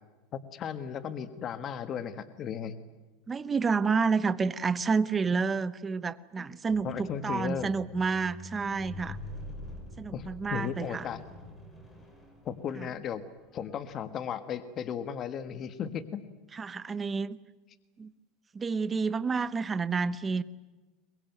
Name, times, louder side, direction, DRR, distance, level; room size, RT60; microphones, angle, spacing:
voice 1, 0.3-2.7 6.8-7.7 10.1-11.2 12.4-13.2 13.5-16.2, left 8 dB, 35° left, 11 dB, 1.5 m, -35 dB
voice 2, 3.3-9.2 10.0-11.1 12.8-12.9 16.5-17.4 18.0-18.1 18.5-20.4, right 5 dB, 20° right, 14 dB, 0.9 m, -29 dB
Squeak, 6.7-13.1 13.8-13.9, left 1 dB, 15° left, 5.1 m, -45 dB
23.0 x 21.5 x 9.2 m, 1.2 s
supercardioid pair, 135°, 0 cm